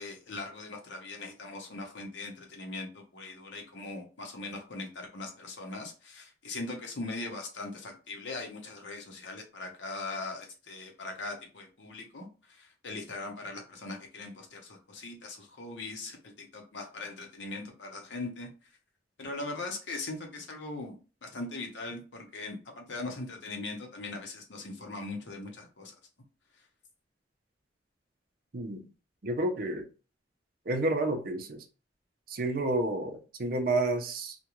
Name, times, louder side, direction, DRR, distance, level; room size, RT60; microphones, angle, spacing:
voice 1, 0.0-18.5 19.2-21.0 21.2-25.9, left 2 dB, 85° left, 0.8 m, -40 dB
voice 2, 29.2-29.9 30.7-31.6 32.3-34.4, right 2 dB, 55° right, 0.5 m, -30 dB
2.4 x 2.2 x 2.9 m
head